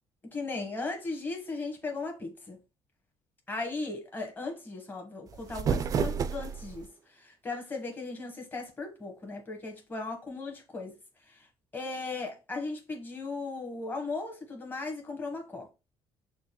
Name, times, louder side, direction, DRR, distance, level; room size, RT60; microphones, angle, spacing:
voice 1, 0.3-2.6 3.5-10.9 11.2-11.5 11.7-15.7, left 3 dB, 20° left, 1.2 m, -37 dB
sound 1, 5.3-6.9, right 6 dB, 40° right, 0.3 m, -30 dB
6.1 x 2.2 x 2.9 m
cardioid pair, 100°, 9 cm